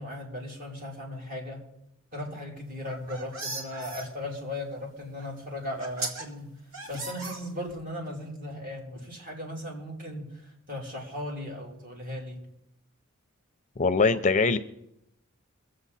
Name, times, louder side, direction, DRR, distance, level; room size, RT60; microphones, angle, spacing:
voice 1, 0.0-1.7 2.1-6.6 6.9-12.5, left 1 dB, 40° right, -1 dB, 3.2 m, -37 dB
sound 1, 2.7-4.0 5.2-5.3 5.8-6.2 6.7-7.8, right 3 dB, 70° right, 2.3 m, -37 dB
voice 2, 13.8-14.6, left 4 dB, 35° left, 12 dB, 0.5 m, -22 dB
23.5 x 7.8 x 4.1 m, 0.79 s
head